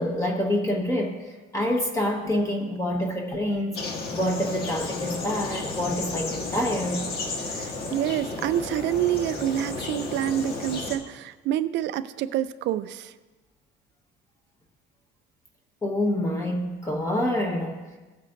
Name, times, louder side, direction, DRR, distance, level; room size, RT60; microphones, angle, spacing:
voice 1, 0.0-7.0 15.8-17.8, left 1 dB, 15° left, 1 dB, 1.2 m, -27 dB
sound 1, 3.7-11.0, left 3 dB, 50° left, 1.4 m, -33 dB
voice 2, 7.5-13.1, right 11 dB, 60° right, 14 dB, 0.4 m, -27 dB
17.0 x 8.3 x 2.5 m, 1.2 s
cardioid pair, 160°, 21 cm